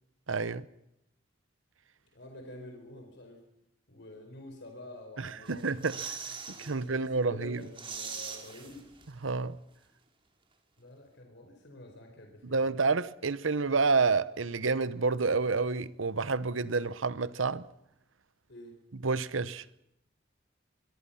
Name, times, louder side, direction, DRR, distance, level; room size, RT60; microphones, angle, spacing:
voice 1, 0.3-0.7 5.2-6.0 6.6-7.6 9.2-9.6 12.4-17.6 19.0-19.6, right 4 dB, 90° right, 0.9 m, -29 dB
voice 2, 2.1-3.4 3.9-5.7 6.5-8.9 10.8-12.7 18.5-18.8, left 1 dB, 65° left, 4.5 m, -48 dB
sound 1, 5.5-6.8 7.1-7.2 7.5-9.3 9.6-9.7, right 5 dB, 25° right, 2.7 m, -41 dB
24.5 x 22.5 x 5.8 m
head